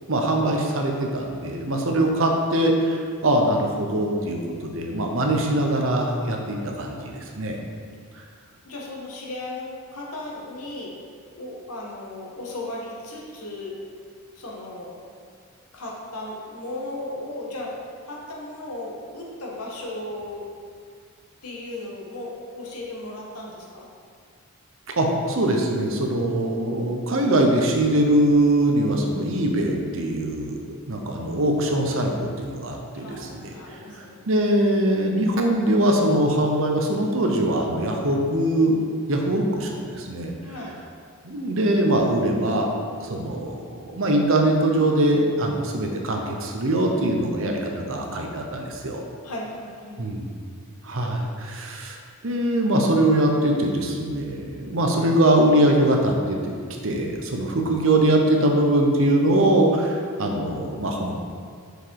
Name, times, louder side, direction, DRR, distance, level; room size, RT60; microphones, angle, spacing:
voice 1, 0.1-7.6 25.0-38.8 39.1-40.3 41.2-42.7 43.0-49.0 50.0-50.3 50.8-52.0 52.2-56.5 56.8-61.1, right 1 dB, 60° right, 1 dB, 0.9 m, -22 dB
voice 2, 8.6-11.0 11.4-13.8 14.3-15.0 15.7-17.8 18.0-20.5 21.4-23.9 32.9-34.3 40.4-40.8 47.5-48.8 49.2-50.0, left 1 dB, 85° left, -2 dB, 1.5 m, -36 dB
6.5 x 5.0 x 4.7 m, 2.1 s
head